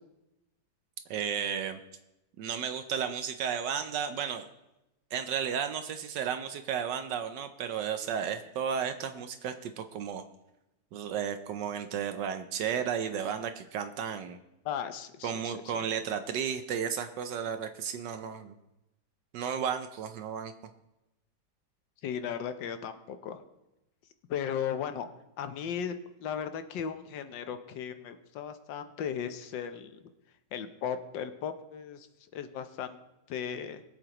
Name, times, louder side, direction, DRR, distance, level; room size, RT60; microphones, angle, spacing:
voice 1, 1.1-1.8 2.4-4.4 5.1-10.2 10.9-14.4 15.2-18.5 19.3-20.5, right 8 dB, 75° right, 8 dB, 1.3 m, -33 dB
voice 2, 14.6-15.8 22.0-23.4 24.3-25.1 25.4-25.9 26.2-30.0 30.5-32.1 32.3-33.0 33.3-33.8, left 8 dB, 80° left, 10 dB, 1.5 m, -36 dB
22.0 x 8.0 x 3.0 m, 0.93 s
omnidirectional pair, 2.0 m